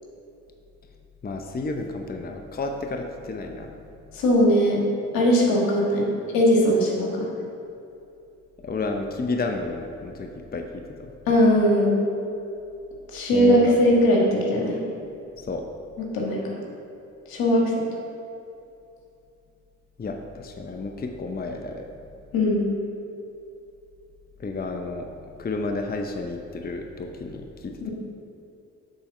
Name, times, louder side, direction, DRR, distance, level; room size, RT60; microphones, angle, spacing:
voice 1, 1.2-3.7 8.6-11.1 13.3-13.7 15.5-15.6 20.0-21.9 24.4-25.1 25.4-27.9, left 3 dB, 25° left, 4 dB, 0.7 m, -31 dB
voice 2, 4.1-4.8 5.1-6.1 6.3-7.3 11.3-12.0 13.1-14.8 16.0-16.4 17.3-17.7 22.3-22.7, equal, 75° left, -2 dB, 1.6 m, -19 dB
8.0 x 4.2 x 5.4 m, 2.7 s
hypercardioid pair, 40°, 35 cm